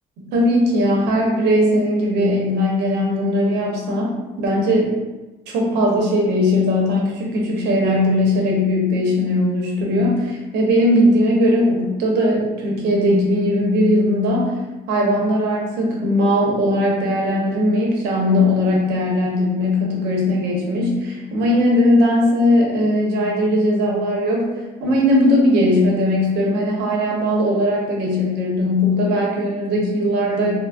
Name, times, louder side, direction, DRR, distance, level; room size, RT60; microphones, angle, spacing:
voice 1, 0.2-4.9 5.5-14.5 14.9-24.5 24.8-30.7, left 1 dB, 85° right, -2 dB, 0.8 m, -19 dB
3.5 x 2.0 x 2.3 m, 1.1 s
cardioid pair, 110°, 17 cm